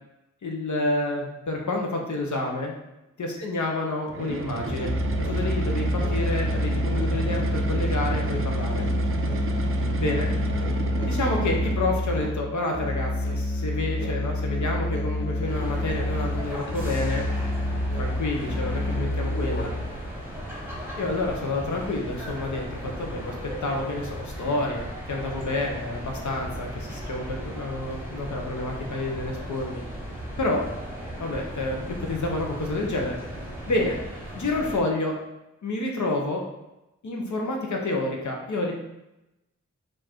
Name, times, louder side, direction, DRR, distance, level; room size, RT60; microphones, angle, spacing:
voice 1, 0.4-2.7 3.2-4.9 5.3-8.8 10.0-10.3 11.0-17.2 17.9-19.7 21.0-23.4 23.6-29.8 30.4-30.6 31.2-33.2 33.7-34.0 34.3-35.2 35.6-36.4 37.0-38.7, left 2 dB, 75° left, 0 dB, 0.7 m, -29 dB
sound 1, 4.1-12.1, right 4 dB, 45° right, 0.4 m, -32 dB
Musical instrument, 4.7-20.0, left 1 dB, 40° left, 0.6 m, -27 dB
sound 2, 15.5-34.8, equal, 10° right, 0.9 m, -36 dB
4.4 x 2.5 x 4.3 m, 0.93 s
wide cardioid pair, 100°, 30 cm